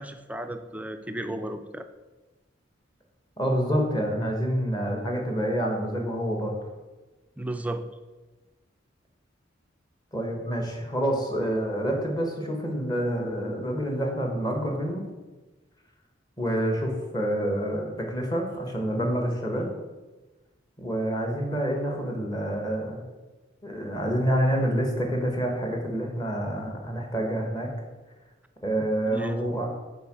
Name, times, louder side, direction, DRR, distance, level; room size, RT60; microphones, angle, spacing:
voice 1, 0.0-1.9 7.4-7.9 28.8-29.4, right 1 dB, 5° right, 7 dB, 0.4 m, -34 dB
voice 2, 3.4-6.6 10.1-15.0 16.4-19.7 20.8-23.0 23.6-27.7 28.6-29.7, equal, 20° left, 2 dB, 1.4 m, -27 dB
6.9 x 4.5 x 6.2 m, 1.2 s
head